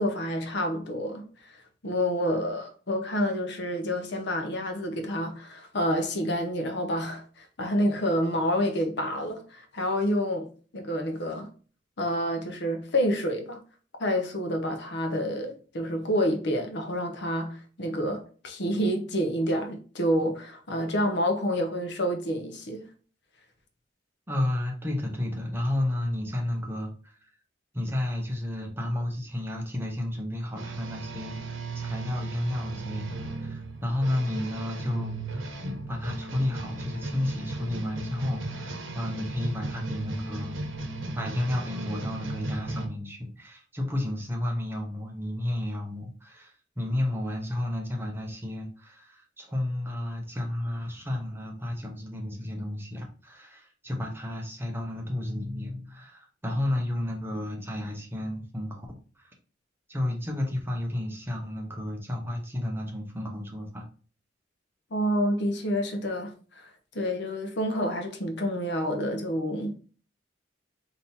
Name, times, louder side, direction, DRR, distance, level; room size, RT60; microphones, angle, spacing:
voice 1, 0.0-1.6 1.8-10.5 10.7-11.5 12.0-13.6 14.0-22.8 64.9-69.8, equal, 60° left, 0.8 m, -28 dB
voice 2, 24.3-27.3 27.7-40.6 41.1-58.9 59.2-59.3 59.9-63.8, left 1 dB, 10° right, 0.9 m, -32 dB
sound 1, 30.6-42.9, right 2 dB, 85° right, 0.8 m, -36 dB
3.6 x 2.8 x 4.1 m
head